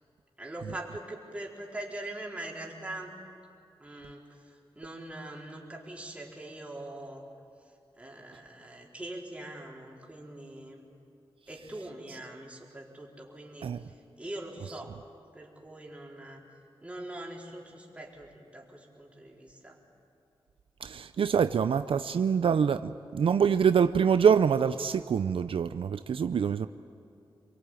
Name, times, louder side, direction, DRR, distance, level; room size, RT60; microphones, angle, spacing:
voice 1, 0.4-3.1 3.8-4.2 4.7-7.2 8.0-10.8 11.5-13.7 14.2-15.0 15.3-16.4 16.8-19.8, right 1 dB, 15° right, -2 dB, 4.4 m, -42 dB
voice 2, 20.8-26.7, right 7 dB, 75° right, 11 dB, 0.6 m, -25 dB
28.0 x 23.0 x 9.2 m, 2.6 s
wide cardioid pair, 110°, 9 cm